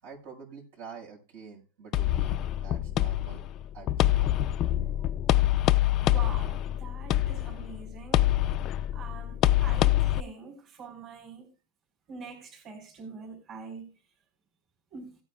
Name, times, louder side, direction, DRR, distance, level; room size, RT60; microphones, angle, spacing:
voice 1, 0.0-2.4 2.6-3.4 3.7-4.4 4.8-5.1, right 5 dB, 70° right, 5.5 m, -47 dB
sound 1, 1.9-10.2, left 13 dB, 35° left, 0.4 m, -25 dB
voice 2, 6.0-8.3 8.9-11.5 12.1-13.9 14.9-15.2, right 5 dB, 30° right, 4.2 m, -44 dB
17.5 x 9.3 x 2.3 m
supercardioid pair, 165°, 0 cm